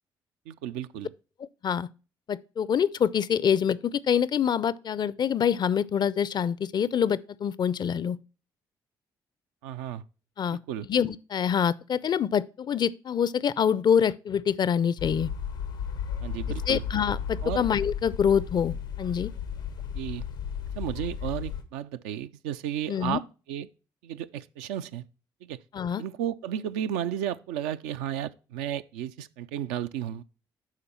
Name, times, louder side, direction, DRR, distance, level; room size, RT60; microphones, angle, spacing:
voice 1, 0.5-1.1 9.6-10.0 10.5-10.9 16.2-16.8 17.4-17.7 19.9-20.3 20.8-23.2 23.5-23.7 24.0-25.0 25.4-25.6 26.0-30.2, right 10 dB, 75° right, 0.4 m, -33 dB
voice 2, 2.3-8.2 10.4-10.6 10.9-15.3 16.7-19.3 22.9-23.2 25.7-26.0, left 8 dB, 45° left, 0.4 m, -25 dB
sound 1, 15.0-21.6, left 7 dB, 85° left, 0.8 m, -34 dB
10.5 x 4.0 x 4.3 m
hypercardioid pair, 45°, 10 cm